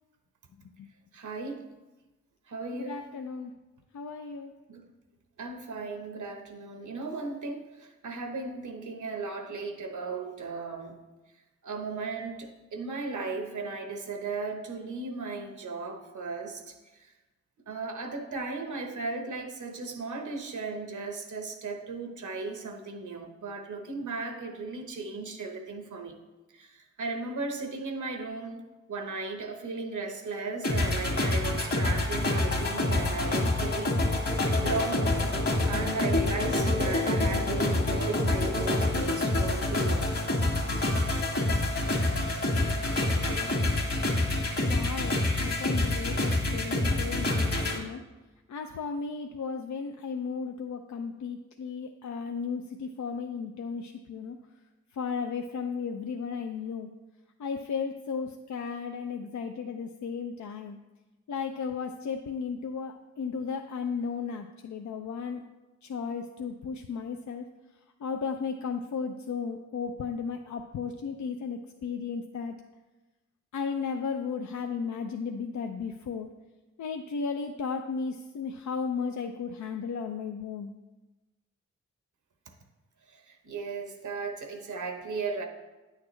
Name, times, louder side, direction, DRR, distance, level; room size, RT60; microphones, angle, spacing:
voice 1, 1.1-1.6 2.5-3.0 4.7-4.9 5.4-11.0 11.6-17.1 17.7-26.2 26.5-28.6 28.9-35.3 35.6-40.1 83.1-85.5, right 3 dB, 80° right, 5 dB, 1.0 m, -36 dB
voice 2, 2.7-3.5 3.9-4.5 44.6-48.0 48.5-54.4 54.9-56.9 57.4-60.8 61.3-65.4 65.8-67.4 68.0-72.5 73.5-76.3 76.8-80.7, left 5 dB, 75° left, 4 dB, 0.5 m, -35 dB
sound 1, 30.6-47.8, left 2 dB, 50° left, 1.7 m, -27 dB
9.4 x 6.5 x 3.2 m, 1.1 s
cardioid pair, 45°, 30 cm